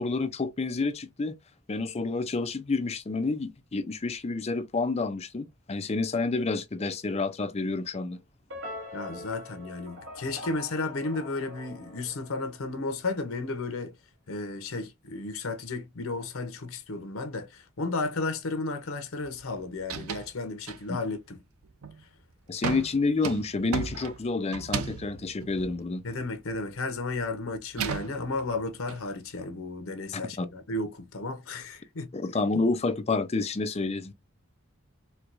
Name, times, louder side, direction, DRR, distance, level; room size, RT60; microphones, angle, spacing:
voice 1, 0.0-1.3 1.7-8.2 20.9-21.0 22.5-26.0 30.1-30.5 32.1-34.1, left 3 dB, 30° left, 0.5 m, -29 dB
sound 1, 8.5-12.8, left 1 dB, 70° right, 1.1 m, -43 dB
voice 2, 8.9-14.0 14.3-21.4 26.0-32.1, left 3 dB, 80° left, 0.8 m, -33 dB
sound 2, 19.2-19.5 19.8-20.3 20.7-21.2 21.6-22.0 22.6-26.7 27.0-29.0, right 6 dB, 85° right, 0.5 m, -36 dB
4.4 x 2.2 x 2.5 m
head